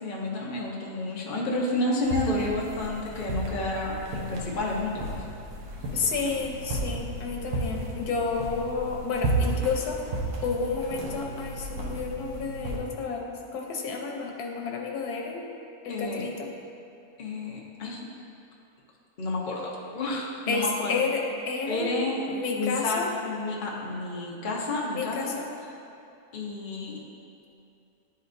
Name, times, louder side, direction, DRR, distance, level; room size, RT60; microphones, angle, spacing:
voice 1, 0.0-5.2 15.9-16.3 17.2-18.0 19.2-21.0 21.7-25.4 26.3-27.0, left 2 dB, 40° left, -4 dB, 0.8 m, -30 dB
sound 1, 2.0-12.8, right 2 dB, 75° right, 1.3 m, -33 dB
voice 2, 5.9-10.0 10.4-15.4 15.8-16.5 20.5-21.9 22.3-23.1 24.9-25.5, left 4 dB, 90° left, 0 dB, 1.3 m, -30 dB
10.5 x 4.2 x 2.6 m, 2.7 s
omnidirectional pair, 1.6 m